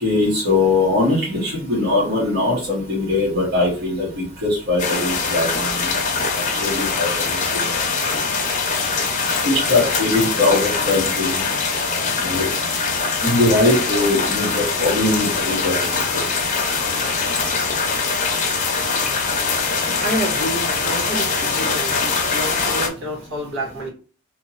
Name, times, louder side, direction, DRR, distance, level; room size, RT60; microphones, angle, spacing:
voice 1, 0.0-5.9 6.6-7.1 7.5-7.6 9.4-11.4 12.2-12.4 13.2-15.7, left 2 dB, 50° right, -7 dB, 1.5 m, -20 dB
sound 1, 4.8-22.9, left 4 dB, 35° left, 0.7 m, -22 dB
voice 2, 19.6-23.9, equal, 65° right, -4 dB, 1.7 m, -29 dB
2.9 x 2.8 x 4.0 m, 0.38 s
head